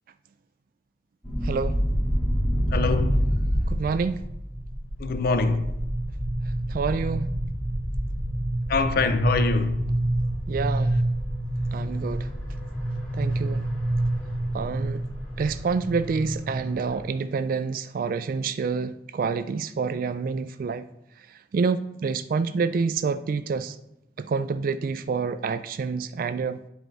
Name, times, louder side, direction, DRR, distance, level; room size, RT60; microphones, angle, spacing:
sound 1, 1.2-17.1, right 1 dB, 10° left, 2.0 m, -27 dB
voice 1, 1.4-1.8 3.7-4.2 6.7-7.3 10.5-10.9 11.7-12.3 13.1-13.6 14.5-15.0 15.4-20.9 21.5-23.8 24.2-26.6, right 5 dB, 50° right, 0.3 m, -27 dB
voice 2, 2.7-3.3 5.0-5.7 8.7-9.8, left 3 dB, 55° left, 0.5 m, -24 dB
9.5 x 3.9 x 4.6 m
head